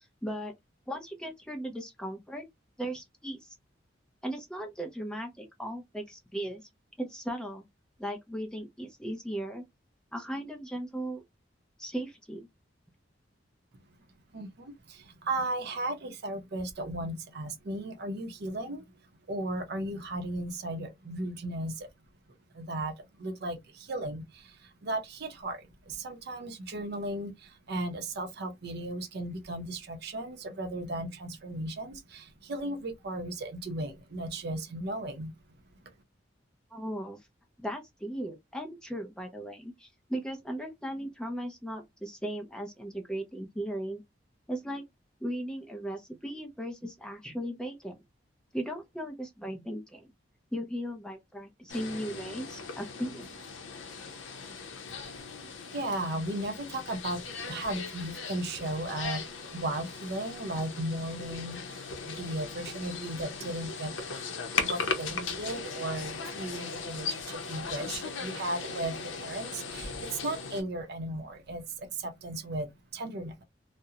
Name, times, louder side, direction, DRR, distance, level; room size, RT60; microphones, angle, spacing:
voice 1, 0.2-0.5 0.9-2.5 2.8-3.5 4.2-6.7 7.0-7.6 8.0-9.6 10.1-11.2 11.8-12.5 36.7-37.2 37.6-44.0 44.5-44.8 45.2-48.0 48.5-50.1 50.5-53.3, equal, 5° left, 0.5 m, -37 dB
voice 2, 14.3-18.8 19.3-21.9 22.5-35.3 55.7-59.2 59.5-64.1 64.6-73.4, right 1 dB, 55° right, 0.6 m, -36 dB
sound 1, 51.7-70.6, left 5 dB, 75° left, 0.6 m, -38 dB
2.4 x 2.0 x 2.7 m
head